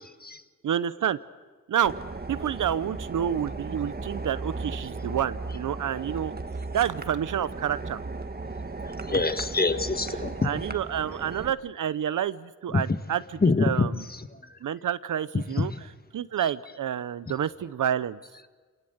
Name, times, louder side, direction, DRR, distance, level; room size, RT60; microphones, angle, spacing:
voice 1, 0.6-1.2 1.7-1.9 2.3-6.3 6.7-8.0 10.4-14.0 14.6-15.7 16.1-18.2, right 9 dB, 85° right, 16 dB, 0.8 m, -29 dB
sound 1, 1.8-11.5, right 3 dB, 30° right, 1.5 m, -36 dB
voice 2, 9.1-10.5 12.7-12.8 13.4-13.9 15.3-15.7, left 3 dB, 30° left, 11 dB, 1.4 m, -25 dB
28.0 x 19.0 x 8.0 m, 1.4 s
cardioid pair, 80°, 30 cm